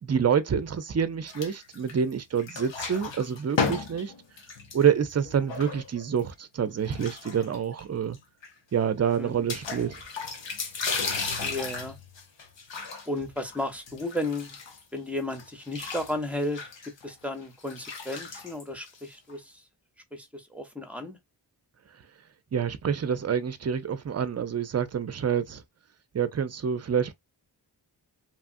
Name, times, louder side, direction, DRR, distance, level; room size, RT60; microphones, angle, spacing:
voice 1, 0.0-4.1 4.7-8.2 8.7-10.0 22.5-25.6 26.1-27.1, right 7 dB, 35° right, 0.5 m, -27 dB
sound 1, 1.3-2.1 2.4-6.2 6.8-7.8 8.1-8.2 8.4-8.5 9.5-15.0 15.3-19.3, left 5 dB, 80° left, 0.9 m, -35 dB
voice 2, 11.2-12.0 13.1-14.6 14.9-16.6 17.0-19.6 20.1-21.2, left 1 dB, 5° right, 0.8 m, -34 dB
3.0 x 2.3 x 2.5 m
cardioid pair, 55°, 44 cm